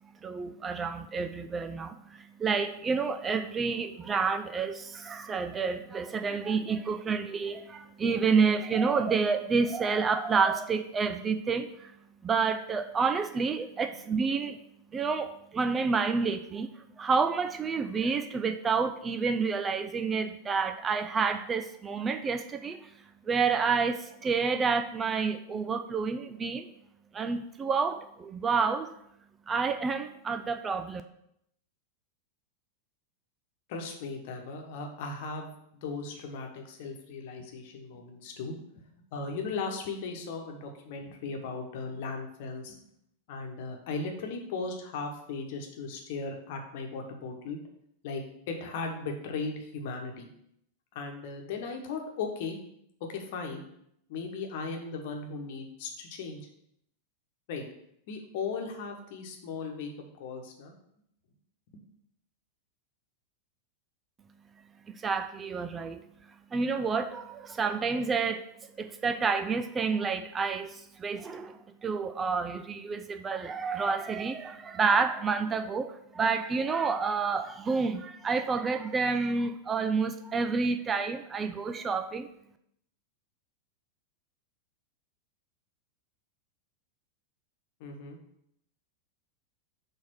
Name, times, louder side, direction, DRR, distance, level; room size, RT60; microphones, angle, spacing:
voice 1, 0.2-11.9 12.2-14.6 14.9-22.9 23.3-26.7 27.1-28.9 29.5-31.0 64.9-66.0 66.5-68.5 68.8-82.3, right 5 dB, 20° right, 8 dB, 0.4 m, -29 dB
voice 2, 33.7-38.5 39.1-42.7 43.3-47.6 48.0-50.3 50.9-52.6 53.1-53.6 54.1-56.5 57.5-57.6 58.1-59.9 60.2-60.7 87.8-88.2, left 4 dB, 50° left, 3 dB, 1.2 m, -37 dB
6.2 x 3.5 x 5.9 m, 0.75 s
figure-of-eight pair, 90°, 0 cm